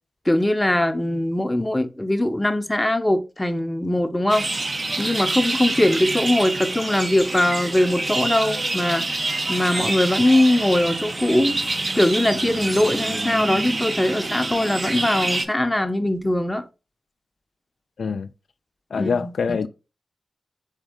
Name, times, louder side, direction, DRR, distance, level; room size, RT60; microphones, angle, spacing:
voice 1, 0.3-4.5 5.0-9.1 9.5-11.6 11.9-16.6 19.0-19.7, left 1 dB, 15° left, 0.6 m, -21 dB
sound 1, 4.3-15.5, right 2 dB, 40° right, 0.7 m, -26 dB
voice 2, 18.0-18.3 18.9-19.7, left 5 dB, 80° left, 0.3 m, -24 dB
4.0 x 3.6 x 3.6 m
cardioid pair, 70°, 0 cm